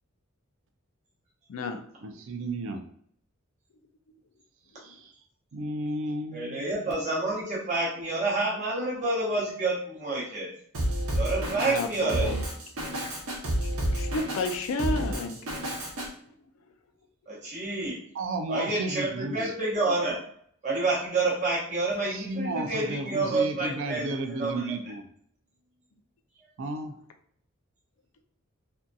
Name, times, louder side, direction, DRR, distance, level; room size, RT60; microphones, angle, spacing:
voice 1, 1.5-1.9 11.5-12.4 13.6-15.5, left 3 dB, 70° left, 6 dB, 0.4 m, -32 dB
voice 2, 2.0-2.8 4.8-5.1 5.5-6.7 18.1-19.5 22.1-25.0 26.6-26.9, right 2 dB, 60° right, 5 dB, 0.4 m, -33 dB
voice 3, 6.3-10.5 11.1-12.3 17.3-18.0 18.5-20.2 20.6-24.9, right 2 dB, 35° right, -6 dB, 0.8 m, -29 dB
Drum kit, 10.7-16.1, right 1 dB, 85° right, 0.8 m, -30 dB
2.7 x 2.5 x 2.2 m, 0.63 s
head